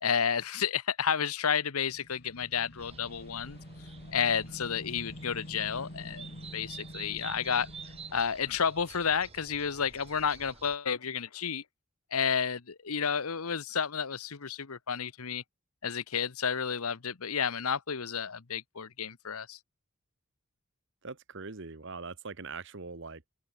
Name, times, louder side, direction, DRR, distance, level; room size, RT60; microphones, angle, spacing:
voice 1, 0.0-3.6 4.1-7.7 8.1-11.6 12.1-15.4 15.8-19.6, left 7 dB, 85° left, 1.0 m, -31 dB
sound 1, 1.9-8.2, left 1 dB, 50° left, 3.0 m, -47 dB
sound 2, 2.8-10.8, right 6 dB, 25° right, 1.0 m, -50 dB
voice 2, 21.0-23.3, right 4 dB, 55° right, 1.3 m, -42 dB
open air
head